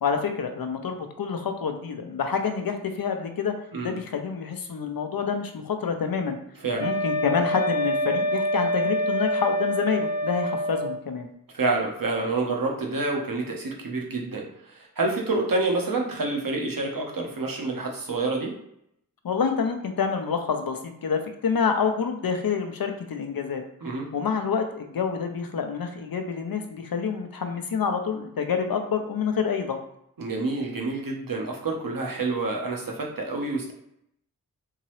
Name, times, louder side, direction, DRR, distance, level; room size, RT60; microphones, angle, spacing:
voice 1, 0.0-3.5 3.8-6.4 6.8-11.3 19.2-23.6 24.1-29.8, left 6 dB, 70° left, 6 dB, 0.6 m, -27 dB
Wind instrument woodwind instrument, 6.8-11.0, equal, 45° left, 0.8 m, -26 dB
voice 2, 11.5-18.5 23.8-24.1 30.2-33.7, right 3 dB, 65° right, 0 dB, 1.0 m, -28 dB
3.7 x 2.8 x 3.1 m, 0.75 s
wide cardioid pair, 50°, 36 cm